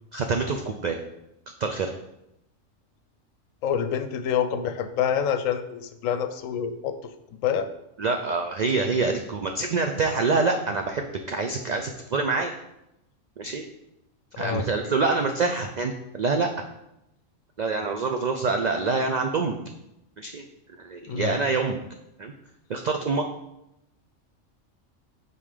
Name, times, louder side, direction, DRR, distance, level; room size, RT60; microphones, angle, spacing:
voice 1, 0.1-1.0 1.6-1.9 8.0-12.5 13.4-13.6 14.4-16.5 17.6-19.6 20.2-20.4 20.8-21.8 22.2-22.3 22.7-23.3, right 4 dB, 80° right, 4 dB, 0.4 m, -26 dB
voice 2, 3.6-7.0 7.4-7.7 14.4-14.6 21.1-21.3, left 8 dB, 90° left, 10 dB, 1.0 m, -27 dB
5.5 x 4.0 x 4.9 m, 0.85 s
omnidirectional pair, 1.3 m